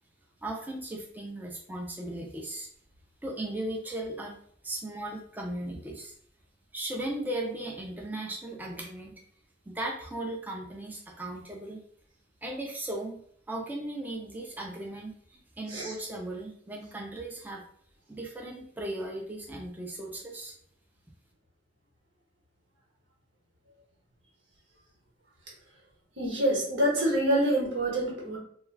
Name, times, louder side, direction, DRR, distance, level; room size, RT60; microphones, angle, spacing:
voice 1, 0.4-2.7 3.2-4.3 4.6-6.1 6.7-9.1 9.7-11.8 12.4-13.2 13.5-17.6 18.1-20.5, right 1 dB, 10° right, 0 dB, 0.4 m, -37 dB
voice 2, 26.2-28.4, right 1 dB, 85° right, -4 dB, 1.1 m, -26 dB
2.2 x 2.2 x 3.2 m, 0.62 s
head